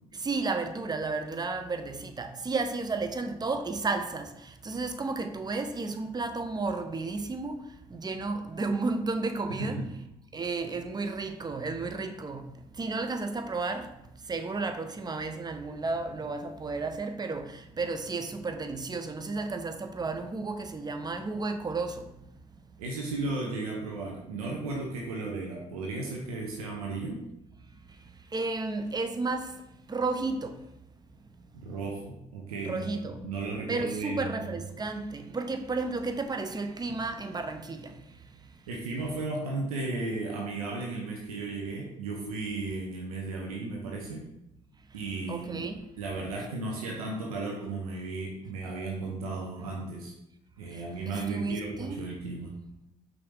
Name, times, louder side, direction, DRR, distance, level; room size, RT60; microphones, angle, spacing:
voice 1, 0.1-9.8 10.3-13.9 14.2-22.1 28.3-29.6 29.9-30.6 32.6-33.2 33.7-38.0 45.3-45.8 50.7-52.1, right 3 dB, 20° right, 0.5 m, -33 dB
voice 2, 9.6-9.9 22.8-27.2 31.5-34.5 38.7-44.3 44.9-45.7 46.0-50.1 50.6-52.6, right 3 dB, 85° right, 0.5 m, -35 dB
5.5 x 2.7 x 3.4 m
figure-of-eight pair, 40°, 18 cm